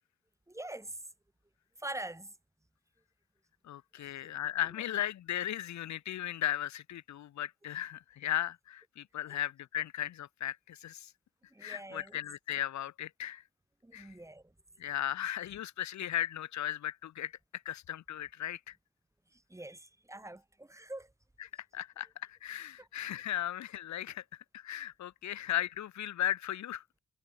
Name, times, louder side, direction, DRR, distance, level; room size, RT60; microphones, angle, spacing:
voice 1, 0.5-1.0 1.8-2.3 4.0-4.3 9.3-9.4 11.5-12.2 13.8-14.5 19.3-21.1 22.8-22.9, right 1 dB, 10° right, 5.4 m, -44 dB
voice 2, 3.6-11.1 11.6-13.4 13.9-14.1 14.8-18.7 21.4-24.2 24.5-26.8, left 12 dB, 70° left, 1.9 m, -36 dB
cardioid pair, 90°, 30 cm